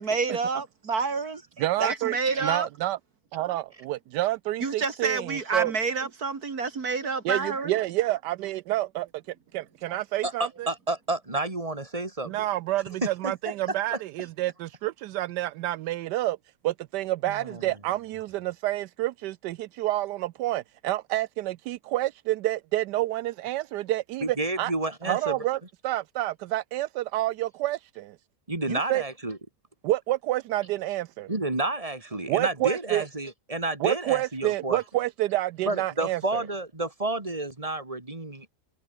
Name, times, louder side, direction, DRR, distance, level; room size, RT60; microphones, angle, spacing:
voice 1, 0.0-1.4 1.8-2.7 4.6-7.8 9.9-10.0, right 4 dB, 65° right, 2.8 m, -28 dB
voice 2, 1.6-2.1 2.4-3.0 3.3-6.0 7.2-9.1 9.5-10.7 12.2-16.4 16.6-24.7 25.0-28.2 28.7-29.0 29.8-31.3 32.3-33.1 33.8-36.4, right 16 dB, 85° right, 1.2 m, -29 dB
voice 3, 10.2-12.4 13.0-13.5 13.9-14.0 17.2-17.7 24.2-25.4 28.5-29.4 31.3-34.8 35.7-38.5, right 2 dB, 20° right, 3.5 m, -30 dB
omnidirectional pair, 1.8 m